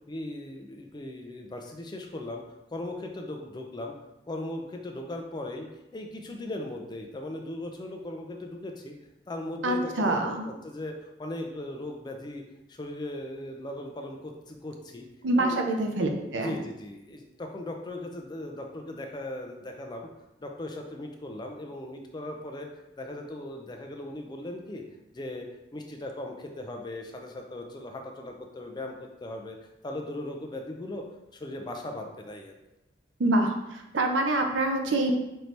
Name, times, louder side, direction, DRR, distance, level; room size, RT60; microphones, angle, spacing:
voice 1, 0.1-2.4 2.7-3.9 4.3-5.7 5.9-8.9 9.3-12.4 12.7-15.1 15.3-15.7 16.4-20.1 20.4-22.7 23.0-24.8 25.1-25.5 25.7-29.6 29.8-31.0 31.3-32.6, left 1 dB, 25° left, 3 dB, 0.4 m, -38 dB
voice 2, 9.6-10.4 15.2-16.6 33.2-35.2, right 2 dB, 75° right, 4 dB, 0.6 m, -26 dB
4.4 x 2.7 x 3.2 m, 0.93 s
head